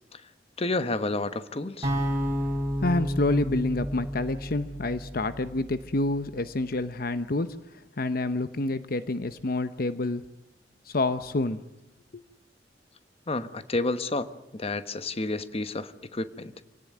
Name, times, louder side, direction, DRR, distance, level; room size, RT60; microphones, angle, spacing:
voice 1, 0.6-1.9 13.3-14.3 14.5-16.5, left 2 dB, 35° left, 12 dB, 1.2 m, -30 dB
sound 1, 1.8-6.0, equal, 20° right, 7.4 m, -31 dB
voice 2, 2.8-10.2 10.9-11.6 12.1-12.2, left 2 dB, 55° left, 12 dB, 0.9 m, -28 dB
26.0 x 18.0 x 9.2 m, 0.90 s
head